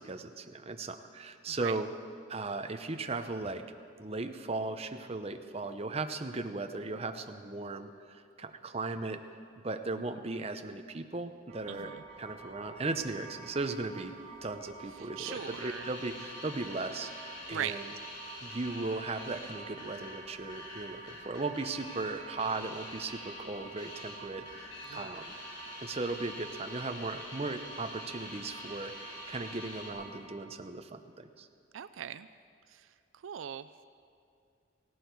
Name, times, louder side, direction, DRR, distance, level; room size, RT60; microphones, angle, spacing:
voice 1, 0.0-1.9 2.3-3.6 4.0-9.2 9.6-14.1 14.4-17.9 18.4-25.4 25.8-31.5, right 3 dB, 30° right, 7 dB, 0.8 m, -37 dB
sound 1, 11.5-30.3, right 3 dB, 50° right, 4.1 m, -50 dB
voice 2, 11.7-12.0 15.0-15.9 17.5-17.8 24.9-25.1 31.7-32.3 32.7-33.8, right 9 dB, 80° right, 13 dB, 0.4 m, -40 dB
sound 2, 15.2-29.9, left 1 dB, 65° left, 3.3 m, -47 dB
18.5 x 16.5 x 4.6 m, 2.4 s
head